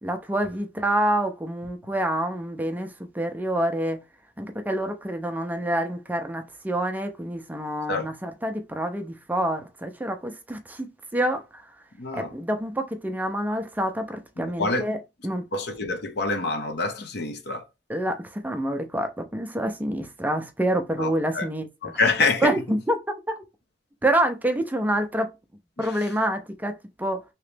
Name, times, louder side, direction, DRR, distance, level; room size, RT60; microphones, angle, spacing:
voice 1, 0.0-4.0 4.4-11.7 12.1-15.0 15.2-15.5 17.9-21.9 22.4-23.0 24.0-25.3 25.8-27.2, right 1 dB, 10° right, 0.4 m, -27 dB
voice 2, 12.0-12.3 14.4-14.9 15.5-17.6 21.0-21.5 21.8-22.6 25.8-26.0, left 3 dB, 65° left, 0.7 m, -26 dB
2.9 x 2.9 x 3.3 m
head